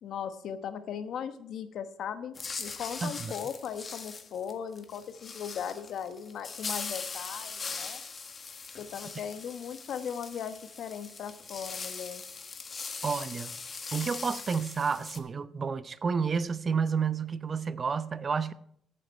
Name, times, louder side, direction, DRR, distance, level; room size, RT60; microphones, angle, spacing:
voice 1, 0.0-8.0 8.8-12.2, left 8 dB, 70° left, 1.2 m, -38 dB
sound 1, 2.3-15.2, left 4 dB, 40° left, 1.7 m, -41 dB
voice 2, 3.0-3.3 13.0-13.5 13.9-18.5, right 5 dB, 40° right, 0.7 m, -30 dB
14.5 x 10.0 x 4.4 m
cardioid pair, 90°, 0 cm